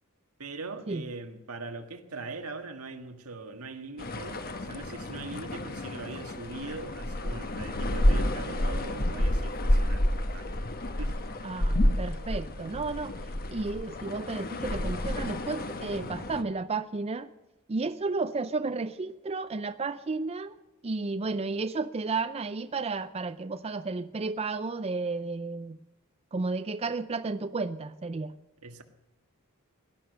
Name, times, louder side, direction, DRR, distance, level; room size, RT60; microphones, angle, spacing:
voice 1, 0.4-10.5 11.0-11.1 28.6-28.8, right 3 dB, 85° right, 5 dB, 1.7 m, -41 dB
sound 1, 4.0-16.4, left 1 dB, 45° left, 1.2 m, -30 dB
voice 2, 11.4-13.2 13.5-17.3 17.7-20.6 20.8-25.8 26.3-28.3, right 3 dB, 30° right, 11 dB, 0.5 m, -32 dB
18.0 x 11.5 x 6.6 m, 1.0 s
head